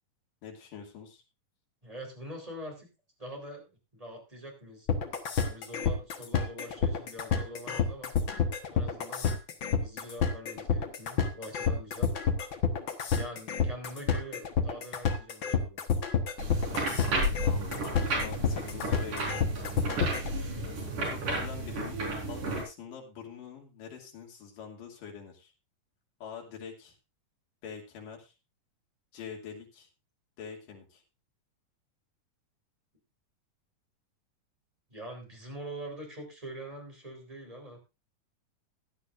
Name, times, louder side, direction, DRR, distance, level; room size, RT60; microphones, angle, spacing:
voice 1, 0.4-1.2 17.4-19.6 21.0-22.0 22.3-25.5 26.2-27.0 27.6-28.3 29.1-29.9 30.4-31.0, left 6 dB, 85° left, 1 dB, 4.2 m, -45 dB
voice 2, 1.8-2.9 3.2-4.9 5.4-8.1 8.7-9.4 9.8-12.1 13.1-15.8 34.9-37.8, equal, 10° right, 1 dB, 3.8 m, -44 dB
sound 1, 4.9-20.3, left 6 dB, 50° left, 1.5 m, -28 dB
sound 2, 16.4-22.6, right 1 dB, 70° right, 6.1 m, -33 dB
16.5 x 11.0 x 2.6 m, 0.27 s
omnidirectional pair, 3.7 m